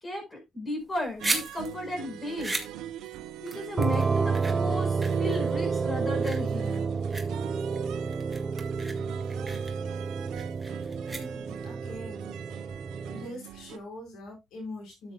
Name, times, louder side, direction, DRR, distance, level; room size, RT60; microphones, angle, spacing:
voice 1, 0.0-2.6 3.4-6.9, left 1 dB, 25° left, 3 dB, 5.3 m, -35 dB
sound 1, 0.8-11.7, right 2 dB, 10° right, 2.1 m, -38 dB
sound 2, 1.2-13.8, right 11 dB, 90° right, 0.9 m, -42 dB
sound 3, 3.8-13.3, right 5 dB, 35° right, 0.7 m, -30 dB
voice 2, 10.7-12.5 13.1-15.1, left 1 dB, 85° left, 1 dB, 4.8 m, -43 dB
12.0 x 8.0 x 2.3 m, 0.20 s
cardioid pair, 90°, 0 cm